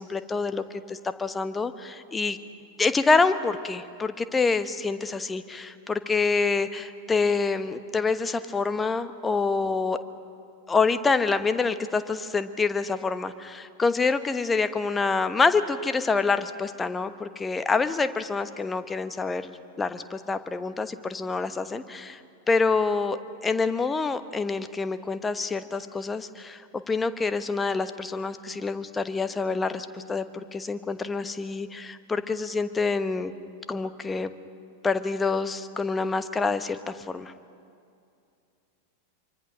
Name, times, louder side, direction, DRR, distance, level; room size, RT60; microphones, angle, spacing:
voice 1, 0.0-2.4 2.8-10.0 10.7-19.5 19.8-22.2 22.5-33.3 33.7-34.3 34.8-37.3, left 4 dB, 15° left, 11 dB, 1.1 m, -26 dB
26.5 x 24.5 x 6.2 m, 2.4 s
figure-of-eight pair, 90°, 0 cm